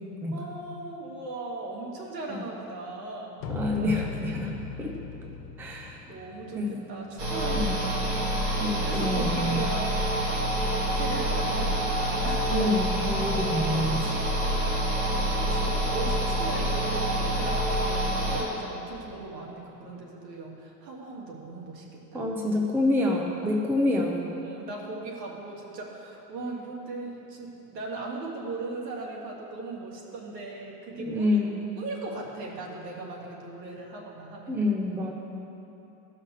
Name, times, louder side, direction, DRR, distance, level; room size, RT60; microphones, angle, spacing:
voice 1, 0.3-3.5 5.7-8.4 8.7-10.5 10.8-12.5 14.5-21.8 22.1-22.3 23.4-23.7 24.4-31.4 31.8-34.6, right 3 dB, 85° right, -2 dB, 2.7 m, -38 dB
sound 1, 3.4-7.4, left 5 dB, 55° left, 1.4 m, -39 dB
voice 2, 3.5-4.5 4.8-4.9 5.6-6.0 6.5-6.8 7.5-7.8 8.6-9.6 12.5-14.0 22.1-24.3 31.0-31.6 34.5-35.1, left 1 dB, 5° right, 0 dB, 0.5 m, -27 dB
sound 2, 7.2-18.4, right 1 dB, 30° right, 2.5 m, -27 dB
15.5 x 5.8 x 6.6 m, 3.0 s
supercardioid pair, 150°, 48 cm